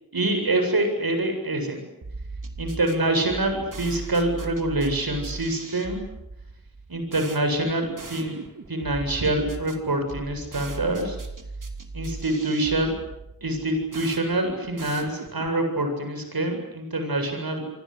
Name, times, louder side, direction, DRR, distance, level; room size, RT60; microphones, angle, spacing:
voice 1, 0.1-1.9 2.6-6.0 6.9-8.4 8.7-11.2 11.9-12.9 13.4-17.6, right 1 dB, 75° right, 6 dB, 7.8 m, -25 dB
sound 1, 2.0-15.6, right 3 dB, 60° right, 3.6 m, -39 dB
29.0 x 25.0 x 8.2 m, 0.85 s
wide cardioid pair, 60°, 36 cm